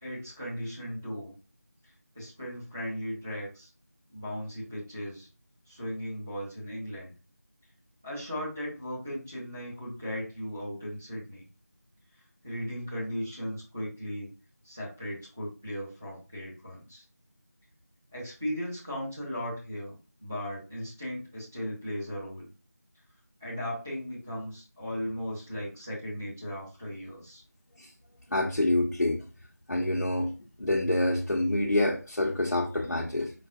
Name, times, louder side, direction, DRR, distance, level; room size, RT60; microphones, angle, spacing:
voice 1, 0.0-1.3 2.1-3.7 4.1-5.3 5.7-7.1 8.0-11.4 12.4-14.3 14.6-17.0 18.1-22.5 23.4-27.4, equal, 10° right, 0.6 m, -37 dB
voice 2, 28.3-29.2 29.7-30.3 30.6-33.3, left 1 dB, 85° left, 0.7 m, -27 dB
4.7 x 2.2 x 2.5 m
figure-of-eight pair, 175°, 9 cm